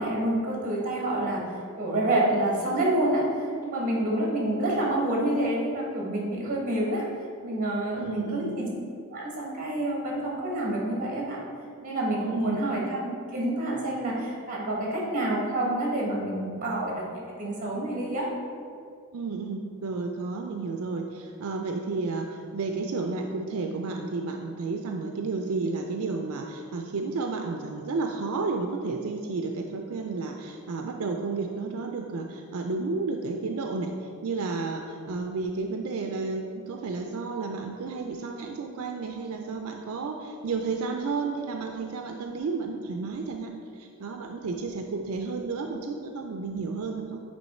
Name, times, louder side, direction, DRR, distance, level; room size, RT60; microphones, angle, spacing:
voice 1, 0.0-1.4 1.8-7.0 7.4-8.7 9.1-11.4 11.8-13.0 13.3-18.3, right 1 dB, 35° right, -3 dB, 1.4 m, -28 dB
voice 2, 7.9-8.6 12.2-12.7 19.1-47.2, right 4 dB, 80° right, 3 dB, 0.4 m, -32 dB
8.7 x 3.0 x 4.2 m, 2.3 s
head